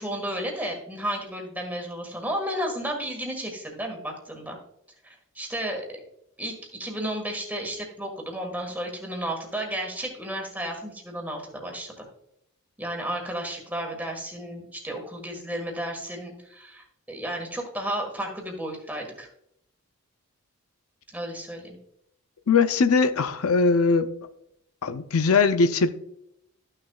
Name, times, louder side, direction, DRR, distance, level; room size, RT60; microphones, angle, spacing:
voice 1, 0.0-4.6 5.0-5.9 6.4-6.5 6.8-12.1 12.8-19.3 21.1-21.8, right 1 dB, 10° right, 1.5 m, -33 dB
voice 2, 22.5-24.1 24.8-25.9, left 4 dB, 80° left, 0.5 m, -20 dB
13.0 x 6.4 x 2.3 m
head